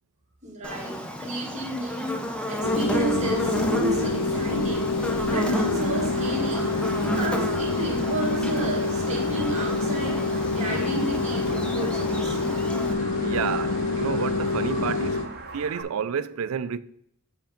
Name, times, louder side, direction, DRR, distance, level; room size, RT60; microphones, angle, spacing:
voice 1, 0.4-12.4, right 1 dB, 30° right, 2.1 m, -32 dB
Buzz, 0.6-12.9, equal, 5° left, 0.6 m, -32 dB
sound 1, 2.6-15.3, left 3 dB, 75° left, 0.7 m, -27 dB
sound 2, 5.8-15.8, right 3 dB, 45° right, 0.9 m, -40 dB
voice 2, 13.2-15.3 15.5-16.8, right 7 dB, 80° right, 0.4 m, -30 dB
6.4 x 5.2 x 5.0 m
head